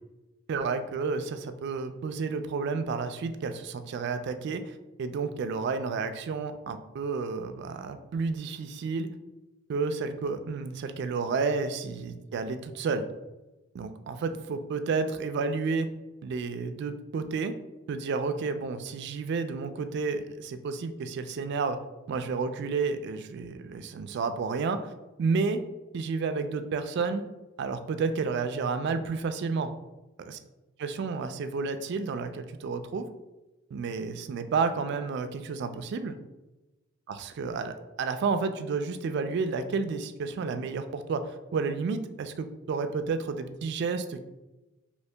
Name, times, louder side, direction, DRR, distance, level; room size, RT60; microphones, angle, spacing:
voice 1, 0.5-9.1 9.7-13.1 13.7-15.9 16.2-17.5 17.9-21.8 22.1-24.8 25.2-25.6 25.9-27.2 27.6-29.7 30.2-30.4 30.8-33.1 33.7-36.1 37.1-44.2, right 4 dB, 55° right, 9 dB, 0.3 m, -31 dB
2.9 x 2.7 x 3.3 m, 1.0 s
head